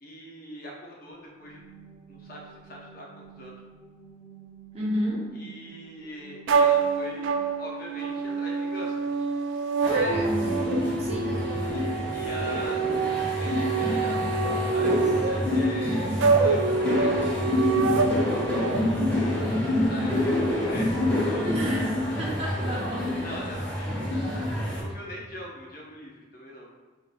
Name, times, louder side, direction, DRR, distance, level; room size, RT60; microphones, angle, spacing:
voice 1, 0.0-1.6 2.1-3.6 5.3-7.3 7.6-9.2 11.7-14.3 14.7-16.1 16.4-17.1 19.9-21.2 23.2-26.7, equal, 50° left, -2 dB, 0.7 m, -42 dB
sound 1, 1.1-8.9, right 6 dB, 25° left, 1.1 m, -51 dB
voice 2, 4.7-5.3 9.9-10.7 11.0-11.4 18.5-18.9 21.4-23.1, equal, 30° right, -5 dB, 0.9 m, -32 dB
sound 2, 6.5-18.8, right 4 dB, 70° right, 0.3 m, -26 dB
sound 3, 9.8-24.8, left 1 dB, 10° left, 1.4 m, -27 dB
4.8 x 2.9 x 2.5 m, 1.2 s
head